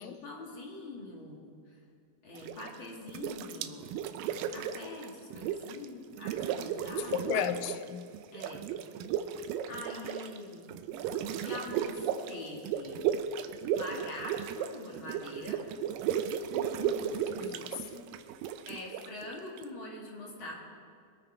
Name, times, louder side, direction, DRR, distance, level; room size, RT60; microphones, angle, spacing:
voice 1, 0.0-1.4 1.7-1.8 2.2-7.3 8.3-8.6 9.7-10.7 11.3-13.0 13.7-15.6 18.7-20.6, left 2 dB, 45° left, 2.2 m, -44 dB
sound 1, 2.3-2.8 3.1-5.9 6.1-7.9 8.1-19.6, right 9 dB, 85° right, 2.3 m, -35 dB
voice 2, 7.0-8.1 16.5-18.1, left 9 dB, 85° left, 2.3 m, -36 dB
21.5 x 9.5 x 4.5 m
omnidirectional pair, 4.0 m